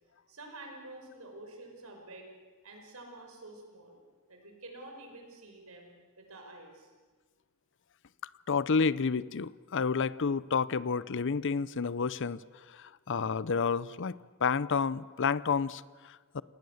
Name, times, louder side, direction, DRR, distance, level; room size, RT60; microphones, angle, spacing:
voice 1, 0.3-2.3 2.6-4.0 4.3-5.9 6.2-6.9, right 2 dB, 75° right, 3 dB, 5.7 m, -48 dB
voice 2, 8.5-12.4 12.8-16.4, left 5 dB, 60° left, 18 dB, 0.6 m, -30 dB
28.5 x 19.0 x 7.9 m, 1.4 s
head